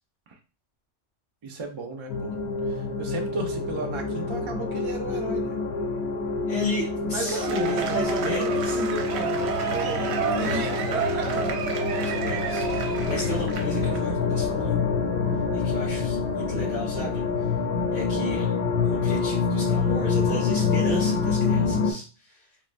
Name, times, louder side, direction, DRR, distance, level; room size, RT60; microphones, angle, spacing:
voice 1, 1.4-2.4 2.7-5.6 7.0-12.0 15.8-16.0 18.1-18.3, right 3 dB, 50° right, 2 dB, 0.3 m, -35 dB
sound 1, 2.1-21.9, left 4 dB, 65° left, 0.8 m, -26 dB
voice 2, 6.5-8.8 10.3-11.3 11.9-14.8 15.5-17.2 17.9-18.5 18.8-22.4, left 1 dB, 90° left, -7 dB, 1.6 m, -34 dB
Cheering / Applause / Crowd, 7.2-14.0, right 7 dB, 70° right, 0.8 m, -30 dB
3.6 x 2.1 x 2.4 m, 0.33 s
omnidirectional pair, 1.2 m